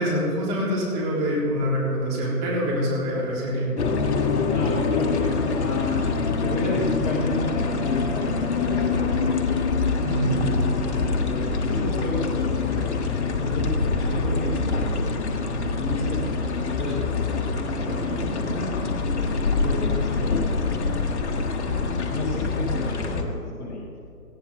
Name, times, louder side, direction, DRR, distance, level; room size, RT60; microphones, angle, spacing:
voice 1, 0.0-3.7 10.0-10.3, equal, 25° right, -5 dB, 3.6 m, -25 dB
sound 1, 3.8-23.2, left 4 dB, 45° left, 1.4 m, -25 dB
voice 2, 4.5-9.4 10.4-15.0 15.8-18.8 19.3-20.5 21.3-23.9, left 2 dB, 10° left, -3 dB, 0.8 m, -31 dB
18.0 x 16.0 x 3.6 m, 2.5 s
figure-of-eight pair, 140°, 49 cm